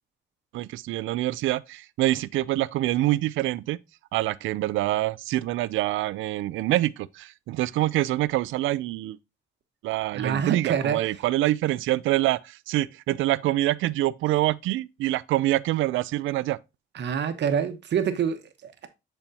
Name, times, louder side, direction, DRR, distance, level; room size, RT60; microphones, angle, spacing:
voice 1, 0.5-3.8 4.1-9.2 9.8-16.6, right 16 dB, 85° right, 0.4 m, -25 dB
voice 2, 10.1-11.0 16.9-18.9, right 7 dB, 60° right, 1.1 m, -26 dB
8.8 x 4.4 x 2.8 m
cardioid pair, 90°, 20 cm